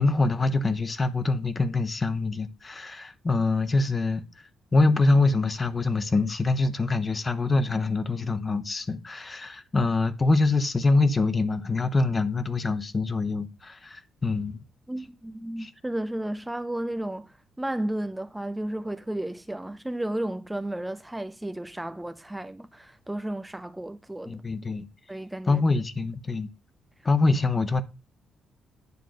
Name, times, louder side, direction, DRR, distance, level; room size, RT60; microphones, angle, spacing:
voice 1, 0.0-4.2 4.7-14.6 15.6-15.7 24.3-24.9 25.5-26.5 27.0-27.8, left 3 dB, 25° left, 1.1 m, -24 dB
voice 2, 14.9-24.4 25.1-25.6, right 1 dB, 10° right, 0.5 m, -33 dB
9.5 x 3.7 x 6.3 m
cardioid pair, 90°, 0 cm